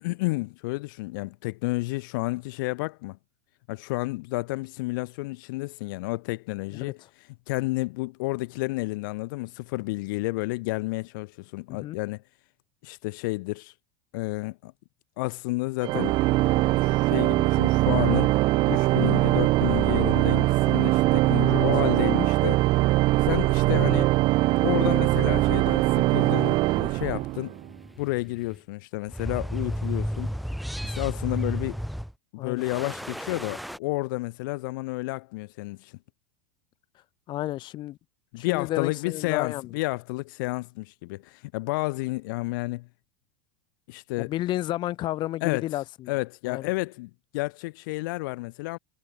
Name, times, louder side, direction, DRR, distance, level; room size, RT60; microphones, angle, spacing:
voice 1, 0.0-3.2 3.7-12.2 12.8-13.7 14.1-14.7 15.2-16.2 16.8-18.3 18.7-22.6 23.2-24.2 24.6-27.5 28.0-30.3 30.8-31.8 32.3-35.9 38.3-42.9 43.9-44.3 45.4-45.6 46.1-48.8, left 23 dB, 70° left, 1.4 m, -31 dB
Organ, 15.8-27.7, right 19 dB, 45° right, 0.5 m, -22 dB
sound 1, 25.5-28.6 29.1-32.1 32.6-33.8, equal, ahead, 1.9 m, -34 dB
voice 2, 37.3-38.0 38.3-39.7 44.2-46.1 46.5-46.7, left 15 dB, 45° left, 1.9 m, -32 dB
supercardioid pair, 120°, 11 cm